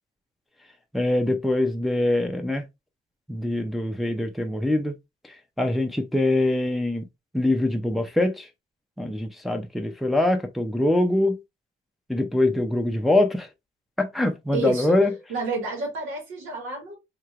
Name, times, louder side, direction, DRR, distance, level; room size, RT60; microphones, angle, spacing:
voice 1, 0.9-2.6 3.3-5.0 5.2-7.1 7.3-8.5 9.0-11.4 12.1-13.5 14.0-15.1, left 1 dB, ahead, 0.5 m, -23 dB
voice 2, 14.5-14.9 15.3-17.0, right 2 dB, 90° right, 1.6 m, -30 dB
3.2 x 2.8 x 2.4 m
cardioid pair, 90°, 20 cm